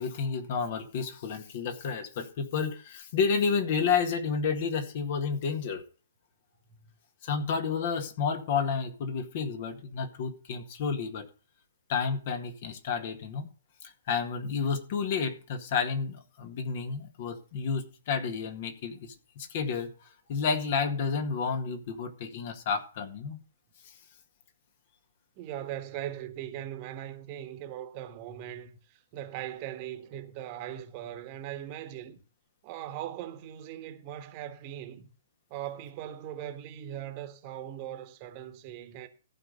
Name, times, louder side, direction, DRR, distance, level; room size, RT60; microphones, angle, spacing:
voice 1, 0.0-5.8 7.2-11.3 11.9-13.5 13.8-23.4, left 5 dB, 45° left, 2.0 m, -31 dB
voice 2, 25.4-32.2 32.6-35.1 35.5-39.1, right 11 dB, 35° right, 1.5 m, -40 dB
14.5 x 5.2 x 6.6 m
figure-of-eight pair, 120°, 0 cm